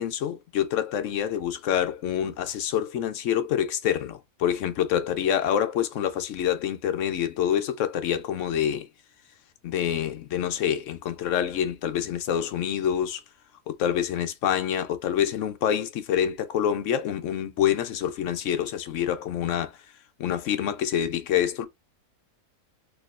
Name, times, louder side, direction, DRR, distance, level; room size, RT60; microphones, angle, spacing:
voice 1, 0.0-8.9 9.6-13.2 13.7-19.7 20.2-21.7, left 9 dB, 70° left, 0.8 m, -26 dB
4.1 x 2.9 x 2.4 m
omnidirectional pair, 1.6 m